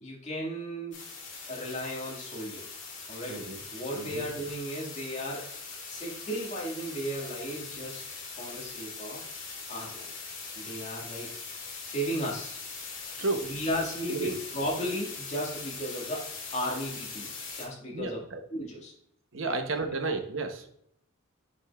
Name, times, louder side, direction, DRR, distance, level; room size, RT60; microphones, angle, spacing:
voice 1, 0.0-1.0 1.5-2.6 3.1-3.4 3.7-5.5 5.9-8.0 8.4-9.3 9.7-10.1 10.6-11.3 11.8-12.6 13.4-17.3 17.6-18.2 18.5-18.9 19.4-19.9, equal, 35° left, -3 dB, 1.9 m, -35 dB
sound 1, 0.9-17.6, left 4 dB, 60° left, 2.1 m, -41 dB
voice 2, 3.3-3.6 3.9-4.2 13.2-13.5 14.1-14.3 17.9-18.4 19.3-20.7, right 3 dB, 65° right, 6 dB, 0.9 m, -32 dB
7.4 x 5.2 x 2.4 m, 0.69 s
head